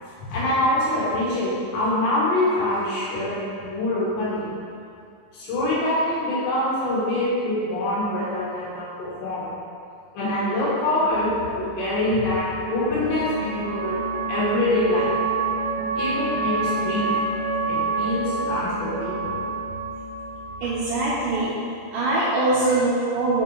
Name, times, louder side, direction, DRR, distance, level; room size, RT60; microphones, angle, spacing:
voice 1, 0.3-4.5 5.3-9.5 10.2-14.0 14.3-15.1 16.0-17.1 17.7-19.4, left 1 dB, 75° left, -8 dB, 3.9 m, -24 dB
sound 1, 11.1-21.4, right 3 dB, 75° right, 2.5 m, -28 dB
voice 2, 20.6-21.6 21.9-23.4, right 2 dB, 90° right, -8 dB, 1.8 m, -22 dB
6.8 x 5.8 x 4.0 m, 2.4 s
omnidirectional pair, 5.1 m